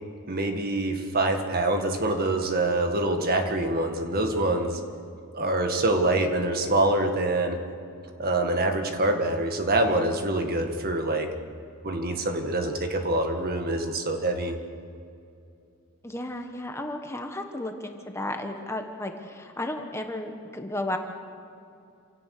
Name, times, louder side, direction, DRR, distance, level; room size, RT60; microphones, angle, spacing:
voice 1, 0.3-4.8 5.3-7.6 8.2-11.3 11.8-14.6, right 2 dB, 45° right, 5 dB, 1.8 m, -25 dB
voice 2, 16.0-21.0, left 1 dB, 10° left, 4 dB, 1.2 m, -33 dB
27.5 x 17.5 x 6.7 m, 2.5 s
head